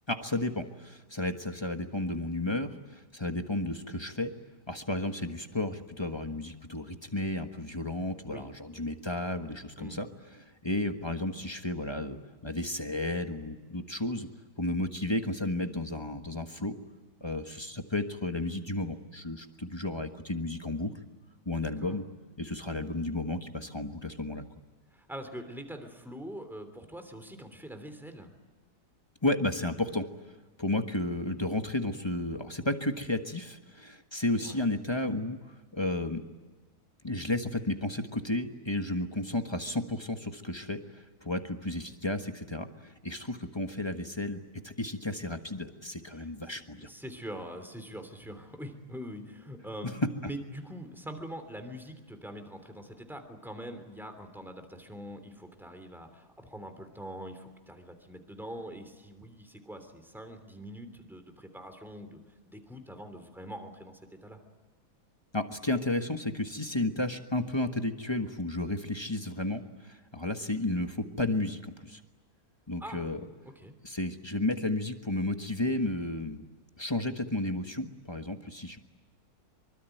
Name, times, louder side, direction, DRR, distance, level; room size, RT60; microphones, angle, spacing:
voice 1, 0.1-4.3 4.7-10.1 10.4-14.3 14.6-16.7 17.2-20.9 21.4-22.0 22.4-24.4 29.2-30.1 30.6-35.4 35.7-36.2 37.0-46.9 65.3-72.0 72.7-73.2 73.8-76.4 76.8-78.8, left 2 dB, 15° left, 6 dB, 1.3 m, -33 dB
voice 2, 24.9-28.3 34.4-34.8 46.1-50.0 50.3-62.2 62.4-64.4 72.8-73.1 73.5-73.7, equal, ahead, 7 dB, 3.0 m, -44 dB
25.0 x 24.0 x 9.2 m, 1.3 s
omnidirectional pair, 1.8 m